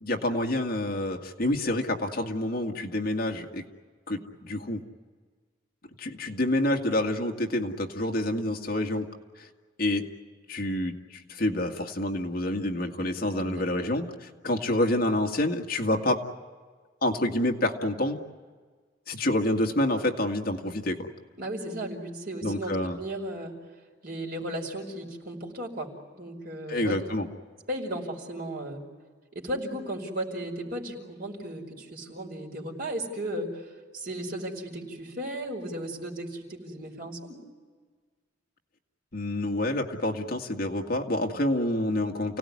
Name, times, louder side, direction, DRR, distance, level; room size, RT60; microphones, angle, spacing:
voice 1, 0.0-3.6 4.1-4.8 6.0-9.1 9.4-9.5 9.8-10.1 10.5-11.0 11.3-16.2 17.0-18.2 19.1-21.1 22.4-23.0 26.7-27.3 39.1-42.4, left 1 dB, 50° left, 2 dB, 2.0 m, -28 dB
voice 2, 13.4-13.9 21.4-23.5 24.0-25.9 26.1-27.0 27.7-28.8 29.3-33.7 33.9-37.4, right 1 dB, 50° right, 1 dB, 5.1 m, -35 dB
29.5 x 18.0 x 9.7 m, 1.5 s
head